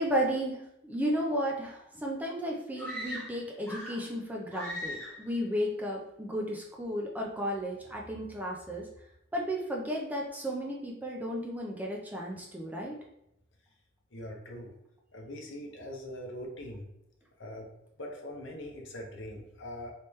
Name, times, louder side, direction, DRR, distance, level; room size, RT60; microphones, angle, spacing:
voice 1, 0.0-8.9 9.3-12.9, equal, 10° right, -2 dB, 0.4 m, -33 dB
sound 1, 2.8-4.1 4.5-5.3, left 1 dB, 5° left, 1.0 m, -39 dB
voice 2, 14.1-14.7 15.1-16.8 17.4-17.7 18.0-19.9, left 1 dB, 65° left, 1 dB, 0.7 m, -42 dB
3.2 x 3.0 x 3.1 m, 0.82 s
head